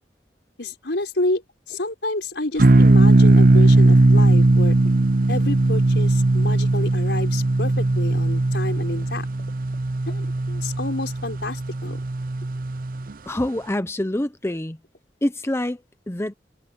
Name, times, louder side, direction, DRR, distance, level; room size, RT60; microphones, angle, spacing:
voice 1, 0.6-1.4 1.7-4.8 5.3-9.3 10.1-12.0, left 2 dB, 80° left, 4.5 m, -29 dB
sound 1, 1.5-1.9 2.2-2.7 3.0-3.4 3.7-4.4 4.8-5.0 6.5-9.8 10.1-10.4 12.0-12.1 12.4-12.6 13.1-13.2 13.4-13.5 13.8-14.1 14.5-15.0, left 1 dB, 60° left, 6.4 m, -50 dB
sound 2, 2.6-13.1, right 2 dB, 50° right, 0.7 m, -18 dB
voice 2, 13.3-14.8 15.2-16.3, left 1 dB, 15° left, 0.7 m, -26 dB
head